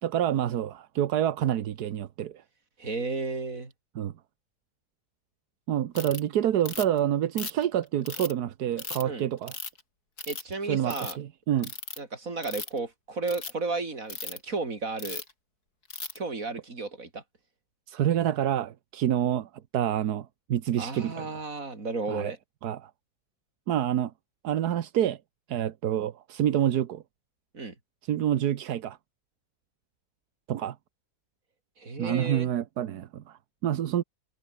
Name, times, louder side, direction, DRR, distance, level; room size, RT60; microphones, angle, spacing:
voice 1, 0.0-2.4 3.9-4.1 5.7-9.6 10.7-11.7 17.9-21.4 22.1-22.3 22.6-22.9 23.7-24.1 24.4-25.2 25.5-27.0 28.1-29.0 30.5-30.8 32.0-34.0, right 10 dB, 90° right, 1.5 m, -27 dB
voice 2, 2.8-3.7 9.0-9.2 10.3-11.2 12.0-15.2 16.2-17.2 20.8-22.4 27.5-27.7 31.8-32.5, right 3 dB, 60° right, 4.0 m, -33 dB
Ratchet pawl, 5.9-6.2 6.6-7.0 7.4-8.3 8.8-9.0 9.5-9.8 10.2-10.5 10.8-11.1 11.6-12.0 12.4-12.8 13.2-13.5 14.1-14.4 15.0-15.3 15.9-16.2, left 4 dB, 85° left, 4.0 m, -37 dB
omnidirectional pair, 1.6 m